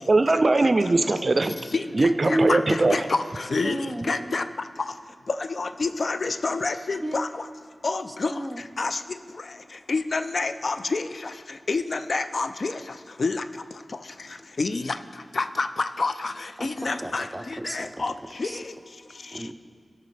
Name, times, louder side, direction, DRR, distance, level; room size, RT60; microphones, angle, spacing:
voice 1, 0.1-1.6 1.9-3.0, right 2 dB, 50° right, 9 dB, 0.4 m, -20 dB
voice 2, 2.3-4.4 5.6-7.3 7.8-8.3 8.8-9.0 9.9-11.1 11.7-12.8 13.2-13.4 14.6-15.0 15.4-16.3 16.6-17.3 17.6-18.1 18.4-18.5, left 3 dB, 65° left, 10 dB, 0.4 m, -27 dB
voice 3, 3.6-4.3 7.0-7.2 8.3-8.6 16.6-17.9 18.4-18.6 19.3-19.5, right 1 dB, 5° right, 6 dB, 0.7 m, -30 dB
15.0 x 5.9 x 3.3 m, 2.2 s
cardioid pair, 50°, 0 cm